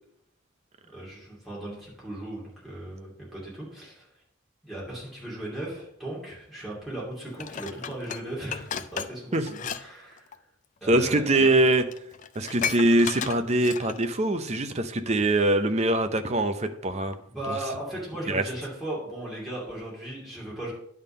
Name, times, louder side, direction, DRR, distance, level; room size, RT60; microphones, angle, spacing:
voice 1, 0.9-4.1 4.6-10.4 10.8-11.5 17.3-20.7, right 1 dB, ahead, -7 dB, 2.8 m, -37 dB
Dishes pots and pans, 7.4-9.8 10.1-10.3 11.2-11.3 11.6-11.7 11.9-14.1 14.6-14.7, left 7 dB, 35° left, 0.3 m, -34 dB
voice 2, 10.9-11.8 12.4-17.2 17.5-17.6 18.3-18.4, right 1 dB, 30° right, 9 dB, 0.6 m, -23 dB
10.0 x 3.7 x 6.6 m, 0.74 s
head